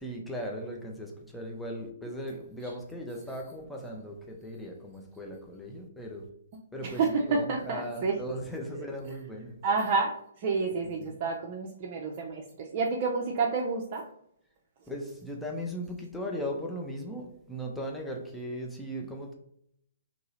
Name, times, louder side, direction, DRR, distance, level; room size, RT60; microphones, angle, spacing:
voice 1, 0.0-6.3 6.7-7.0 7.3-9.6 11.0-11.1 14.9-19.3, equal, 5° left, 0 dB, 0.6 m, -38 dB
voice 2, 6.8-8.2 9.6-10.1 10.4-14.0, right 4 dB, 40° right, -1 dB, 0.5 m, -29 dB
2.9 x 2.8 x 4.1 m, 0.70 s
figure-of-eight pair, 125°, 0 cm